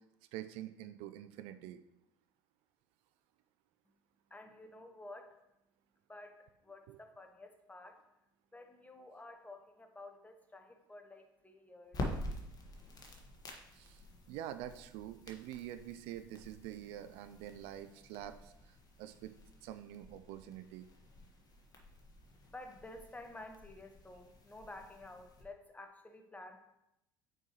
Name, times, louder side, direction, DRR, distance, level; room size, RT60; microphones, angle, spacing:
voice 1, 0.3-1.8 6.9-7.0 13.7-19.3 19.6-20.9, right 12 dB, 65° right, 10 dB, 0.4 m, -46 dB
voice 2, 3.9-12.2 22.5-26.6, left 2 dB, 15° left, 5 dB, 0.9 m, -52 dB
sound 1, 11.9-25.4, left 1 dB, 35° left, 1.4 m, -48 dB
7.7 x 4.5 x 3.0 m, 0.87 s
hypercardioid pair, 65°, 11 cm